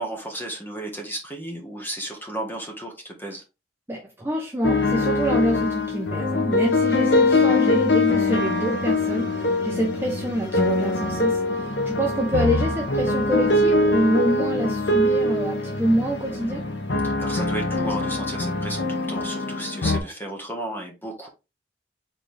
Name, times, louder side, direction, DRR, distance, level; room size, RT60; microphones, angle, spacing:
voice 1, 0.0-3.4 17.0-21.3, right 1 dB, 10° left, 1.2 m, -33 dB
voice 2, 3.9-11.4 11.8-16.6, equal, 15° right, 0.8 m, -26 dB
sound 1, 4.6-20.0, left 2 dB, 75° left, 0.8 m, -23 dB
4.4 x 3.4 x 3.3 m
head